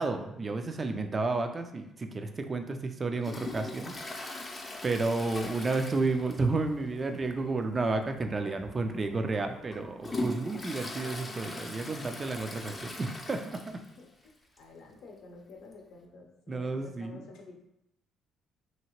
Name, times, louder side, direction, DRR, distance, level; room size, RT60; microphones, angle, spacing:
voice 1, 0.0-4.3 4.8-13.8 16.5-17.2, right 3 dB, 35° right, 6 dB, 0.4 m, -31 dB
Toilet flush, 3.2-6.7 6.9-7.0 7.5-7.6 8.4-8.5 9.1-14.0 14.3-14.4 14.6-14.7 15.7-15.8, left 2 dB, 30° left, 0.6 m, -40 dB
sound 1, 5.8-12.9, right 2 dB, 60° right, 0.8 m, -53 dB
voice 2, 14.0-17.6, left 3 dB, 70° left, 1 dB, 0.6 m, -50 dB
2.9 x 2.7 x 2.9 m, 0.82 s
supercardioid pair, 70°, 0 cm